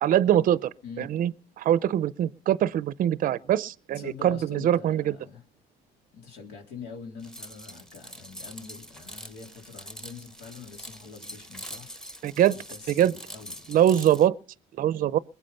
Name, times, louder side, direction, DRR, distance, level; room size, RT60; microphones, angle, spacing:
voice 1, 0.0-0.7 1.0-5.2 12.2-12.5 12.9-13.1 13.7-14.3 14.8-15.2, right 11 dB, 55° right, 0.6 m, -23 dB
voice 2, 3.9-5.4 6.1-11.9 12.5-13.7, left 5 dB, 85° left, 3.8 m, -44 dB
sound 1, 7.2-14.3, equal, 5° left, 1.0 m, -44 dB
22.0 x 8.4 x 5.6 m
cardioid pair, 110°, 17 cm